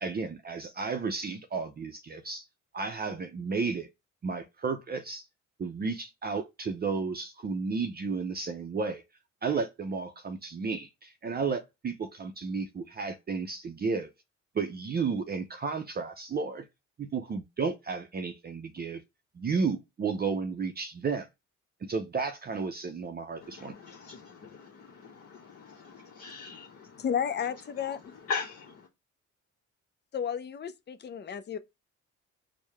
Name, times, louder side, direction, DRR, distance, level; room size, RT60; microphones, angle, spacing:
voice 1, 0.0-2.4 2.7-3.9 4.2-5.3 5.6-9.0 9.4-14.1 14.5-16.7 17.0-19.0 19.4-21.3 21.8-23.7, right 4 dB, 30° right, 0.5 m, -33 dB
voice 2, 23.4-27.2 27.5-27.6 27.8-28.0 28.3-28.6, left 5 dB, 50° left, 0.9 m, -40 dB
voice 3, 27.0-28.0 30.1-31.6, left 8 dB, 35° left, 0.5 m, -32 dB
4.5 x 2.2 x 3.3 m
cardioid pair, 90°, 30 cm